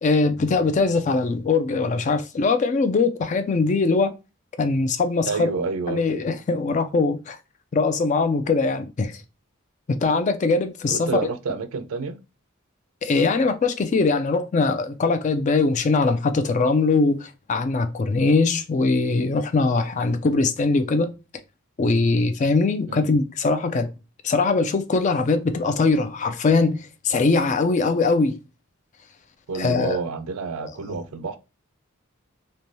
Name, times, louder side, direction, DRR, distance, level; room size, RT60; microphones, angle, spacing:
voice 1, 0.0-4.1 4.6-5.5 5.9-7.4 7.7-9.2 9.9-11.2 13.0-21.1 21.8-23.9 24.2-28.4 29.5-30.0 30.9-31.0, left 3 dB, 35° left, 0.3 m, -21 dB
voice 2, 5.2-6.0 10.9-12.2 22.9-23.1 29.5-31.4, right 4 dB, 85° right, 0.4 m, -29 dB
3.1 x 2.2 x 2.6 m
head